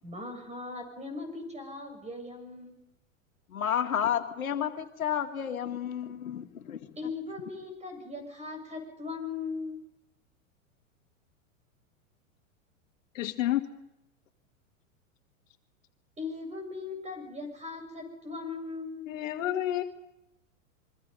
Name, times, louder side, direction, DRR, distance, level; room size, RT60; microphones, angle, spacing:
voice 1, 0.0-2.7 7.0-9.8 16.2-19.1, left 3 dB, 15° right, 7.6 m, -39 dB
voice 2, 3.5-6.9, left 9 dB, 85° left, 2.1 m, -31 dB
voice 3, 13.1-13.6 19.1-19.8, left 13 dB, 70° left, 2.0 m, -29 dB
27.5 x 23.5 x 5.5 m
hypercardioid pair, 105°, 41 cm